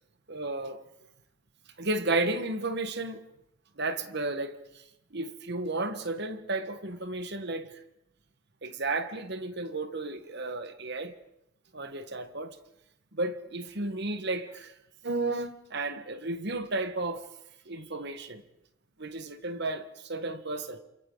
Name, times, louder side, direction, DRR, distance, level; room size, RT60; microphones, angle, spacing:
voice 1, 0.3-0.8 1.8-3.2 3.8-4.8 5.1-7.8 8.6-11.1 11.7-12.6 13.1-14.7 15.0-17.2 17.6-18.4 19.0-20.8, right 2 dB, 50° right, 1.4 m, -33 dB
28.5 x 28.0 x 3.9 m
head